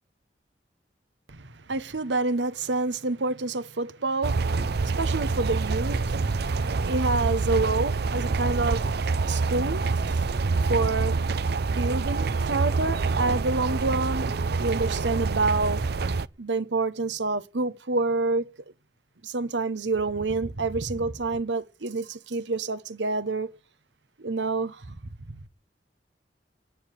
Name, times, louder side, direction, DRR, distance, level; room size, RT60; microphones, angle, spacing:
voice 1, 1.3-4.6 4.8-6.2 6.8-11.3 11.7-14.3 14.6-15.9 16.4-18.5 19.2-23.6 24.2-25.0 25.3-25.4, right 3 dB, 80° right, 1.1 m, -28 dB
sound 1, 4.2-16.3, right 4 dB, 65° right, 0.6 m, -26 dB
10.5 x 9.7 x 8.9 m
head